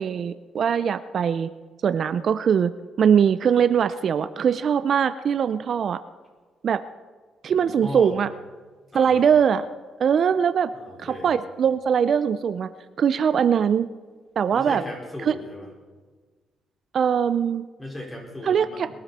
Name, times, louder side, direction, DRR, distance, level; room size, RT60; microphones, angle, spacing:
voice 1, 0.0-1.5 1.8-2.7 3.0-6.0 6.6-6.8 7.4-8.3 8.9-9.7 10.0-10.7 11.0-12.7 13.0-13.9 14.4-14.8 15.2-15.3 16.9-17.6 18.4-18.9, right 7 dB, 55° right, 13 dB, 0.5 m, -21 dB
voice 2, 7.5-8.2 8.9-9.2 10.7-11.3 14.5-15.7 17.8-18.9, left 1 dB, 15° left, -1 dB, 4.9 m, -36 dB
21.5 x 12.5 x 4.2 m, 1.4 s
cardioid pair, 90°, 0 cm